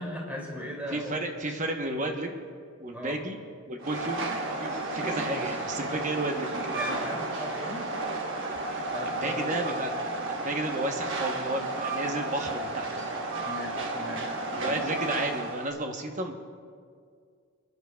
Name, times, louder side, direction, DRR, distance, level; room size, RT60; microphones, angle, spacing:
voice 1, 0.0-1.2 2.9-3.2 5.4-5.5 5.8-6.0 6.7-7.9 8.9-9.6 13.4-14.3 14.6-14.8, equal, 10° right, -3 dB, 2.6 m, -38 dB
voice 2, 0.9-2.4 2.8-3.4 3.7-4.3 4.6-6.5 9.2-9.9 10.3-13.1 14.5-16.4, right 2 dB, 35° right, 4 dB, 1.0 m, -32 dB
Train, 3.8-15.7, right 2 dB, 60° right, 1.2 m, -32 dB
29.0 x 11.0 x 2.3 m, 2.1 s
head